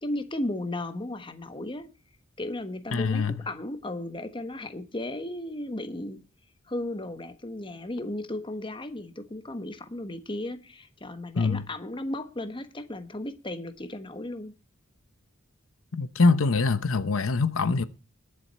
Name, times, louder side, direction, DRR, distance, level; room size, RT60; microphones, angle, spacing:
voice 1, 0.0-1.9 2.4-6.2 6.7-14.5, left 1 dB, 25° left, 1.3 m, -35 dB
voice 2, 2.9-3.3 11.4-11.7 15.9-17.8, left 3 dB, 75° left, 0.8 m, -24 dB
21.0 x 7.8 x 4.2 m
head